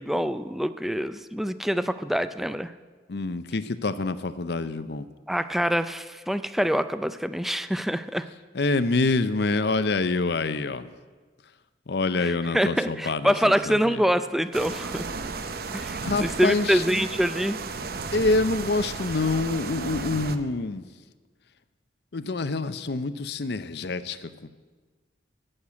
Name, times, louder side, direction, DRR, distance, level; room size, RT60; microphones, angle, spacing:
voice 1, 0.0-2.7 5.3-8.3 12.2-15.1 15.7-17.6, equal, ahead, 12 dB, 0.4 m, -25 dB
voice 2, 3.1-5.1 8.5-10.9 11.9-14.0 16.0-16.8 18.1-20.8 22.1-24.5, left 3 dB, 60° left, 13 dB, 0.6 m, -26 dB
sound 1, 14.5-20.4, right 4 dB, 55° right, 0.7 m, -34 dB
14.5 x 6.6 x 8.3 m, 1.4 s
head